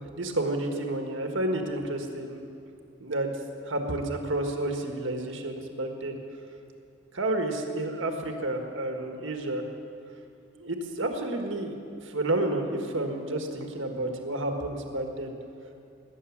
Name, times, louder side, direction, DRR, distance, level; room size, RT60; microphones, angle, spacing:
voice 1, 0.0-2.5 3.0-3.3 3.6-6.2 7.1-9.6 10.6-11.7 12.0-15.3, right 1 dB, 70° right, 4 dB, 1.6 m, -30 dB
19.0 x 9.0 x 7.3 m, 2.6 s
head